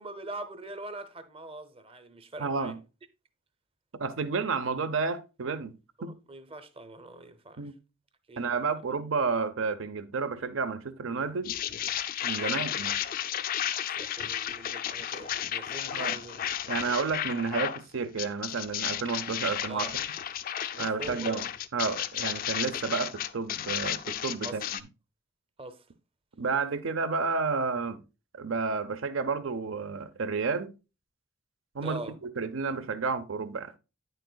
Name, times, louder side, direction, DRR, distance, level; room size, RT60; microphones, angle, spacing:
voice 1, 0.0-2.7 6.0-7.7 8.3-8.5 12.4-12.7 13.9-16.5 19.7-19.9 20.8-21.4 24.4-24.6 25.6-25.8 31.8-32.2, right 2 dB, 30° right, 0.7 m, -43 dB
voice 2, 2.4-2.8 4.0-5.7 6.0-6.2 7.6-7.8 8.4-11.5 12.2-12.9 15.9-16.2 16.7-20.0 20.8-21.5 21.7-24.8 26.4-28.0 28.3-30.7 31.7-32.0 32.4-33.7, right 4 dB, 75° right, 0.7 m, -31 dB
sound 1, 11.4-17.8 18.2-24.8, left 10 dB, 45° left, 0.4 m, -33 dB
9.2 x 6.5 x 2.3 m
head